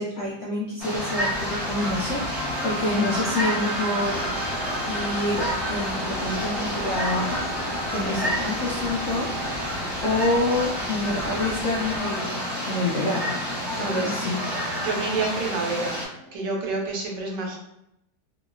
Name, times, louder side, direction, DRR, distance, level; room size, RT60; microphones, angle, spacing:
voice 1, 0.0-4.2 4.9-7.4 7.9-9.7 10.0-12.3 12.7-13.3 13.7-14.4, left 2 dB, 75° left, -3 dB, 0.6 m, -27 dB
sound 1, 0.8-16.1, equal, 15° right, 1.4 m, -29 dB
sound 2, 0.9-16.9, right 1 dB, 60° right, 0.8 m, -38 dB
sound 3, 4.0-12.0, left 1 dB, 5° left, 0.4 m, -40 dB
voice 2, 14.8-16.0 16.3-17.6, right 3 dB, 80° right, -1 dB, 1.3 m, -28 dB
3.0 x 2.7 x 2.2 m, 0.81 s
omnidirectional pair, 1.9 m